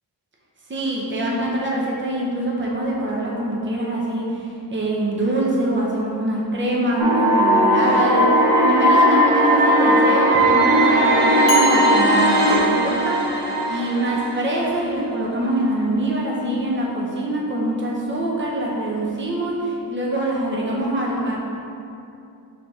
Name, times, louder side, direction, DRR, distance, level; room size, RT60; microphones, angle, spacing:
voice 1, 0.7-21.4, right 1 dB, 25° right, -3 dB, 1.0 m, -24 dB
sound 1, 7.0-15.0, right 1 dB, 65° right, 1.3 m, -17 dB
sound 2, 11.5-13.5, left 7 dB, 80° left, 0.8 m, -31 dB
5.6 x 3.6 x 5.0 m, 2.6 s
cardioid pair, 85°, 43 cm